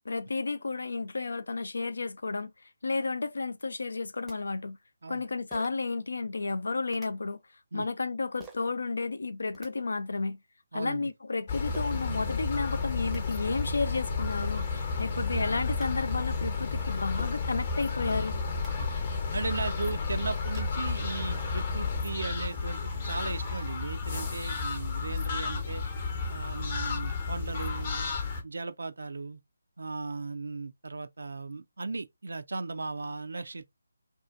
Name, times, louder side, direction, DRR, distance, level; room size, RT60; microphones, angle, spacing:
voice 1, 0.1-2.5 2.8-4.8 5.1-7.4 7.7-10.4 10.7-18.4, left 3 dB, 65° left, 0.5 m, -32 dB
sound 1, 4.3-4.4 5.5-5.9 6.9-7.1 8.4-8.7 9.3-9.7 11.7-11.9 12.7-12.8 13.0-13.2 14.1-14.2 14.4-14.6 15.5-15.9 17.2-17.5 18.4-18.7 19.4-19.5 19.8-20.7, right 3 dB, 5° right, 0.6 m, -49 dB
voice 2, 10.7-11.1 18.8-18.9 19.3-25.8 26.3-28.1 28.4-29.4 29.8-33.6, right 3 dB, 65° right, 0.4 m, -37 dB
sound 2, 11.5-28.4, left 4 dB, 35° left, 0.8 m, -32 dB
2.6 x 2.4 x 2.4 m
figure-of-eight pair, 155°, 0 cm